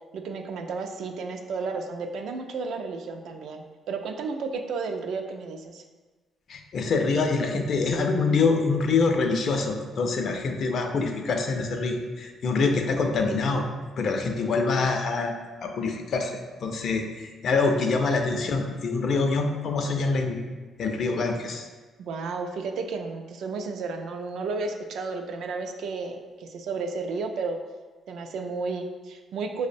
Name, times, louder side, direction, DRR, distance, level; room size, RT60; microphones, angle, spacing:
voice 1, 0.1-5.8 17.9-18.0 22.0-27.6 28.1-29.7, right 4 dB, 75° right, 5 dB, 0.3 m, -32 dB
voice 2, 6.5-13.6 14.0-15.3 15.6-16.3 16.6-20.4 20.8-21.7, left 4 dB, 60° left, 4 dB, 0.4 m, -25 dB
4.9 x 2.0 x 2.6 m, 1.3 s
cardioid pair, 90°, 0 cm